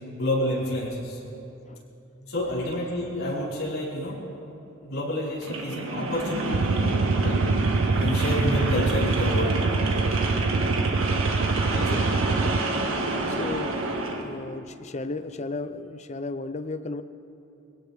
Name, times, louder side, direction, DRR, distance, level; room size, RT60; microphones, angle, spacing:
voice 1, 0.2-1.2 2.2-4.2 4.8-7.4 8.0-9.6 11.7-11.9, left 1 dB, 75° left, -8 dB, 4.9 m, -29 dB
sound 1, 5.4-14.2, right 2 dB, 75° right, 1.7 m, -28 dB
sound 2, 6.5-12.6, right 4 dB, 55° right, 0.4 m, -25 dB
voice 2, 11.8-12.8 13.3-13.8 14.2-17.0, left 3 dB, 30° left, 12 dB, 0.5 m, -35 dB
22.5 x 17.0 x 3.5 m, 2.9 s
head